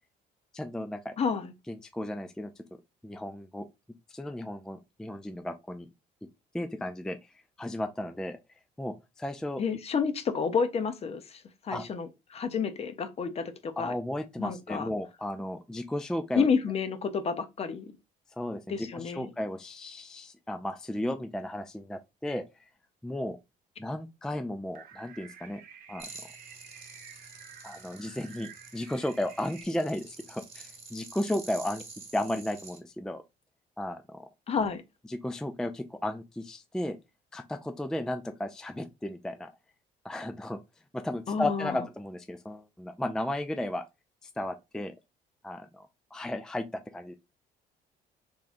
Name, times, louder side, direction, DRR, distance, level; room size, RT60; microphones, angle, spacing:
voice 1, 0.5-1.1 1.7-2.5 3.0-3.7 4.1-5.9 6.5-7.2 7.6-8.4 8.8-9.6 11.7-11.8 13.8-16.5 18.4-22.7 23.0-23.4 23.8-25.6 25.9-26.1 27.6-33.2 33.8-34.3 35.1-37.0 37.3-39.5 40.0-40.6 40.9-43.8 44.2-44.9 45.4-46.7 46.9-47.1, left 1 dB, 5° left, 0.3 m, -34 dB
voice 2, 1.2-1.5 9.6-13.9 14.4-14.9 16.3-17.9 18.7-19.3 34.5-34.8 41.3-41.8, left 5 dB, 35° left, 0.7 m, -30 dB
sound 1, 24.7-29.6, right 7 dB, 60° right, 0.9 m, -51 dB
sound 2, 26.0-32.8, right 3 dB, 35° right, 1.3 m, -48 dB
3.6 x 3.2 x 2.5 m
cardioid pair, 110°, 17 cm